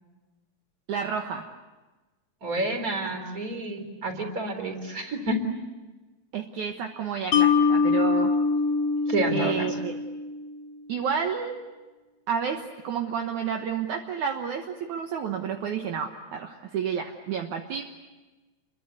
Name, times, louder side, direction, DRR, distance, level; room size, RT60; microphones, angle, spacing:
voice 1, 0.9-1.5 6.3-8.3 9.3-9.9 10.9-11.6 12.3-17.8, right 7 dB, 65° right, 4 dB, 2.5 m, -30 dB
voice 2, 2.4-5.4 9.1-9.7, right 1 dB, 25° right, 6 dB, 3.9 m, -29 dB
Mallet percussion, 7.3-10.6, left 5 dB, 70° left, 3.2 m, -23 dB
29.5 x 23.5 x 8.3 m, 1.2 s
omnidirectional pair, 4.1 m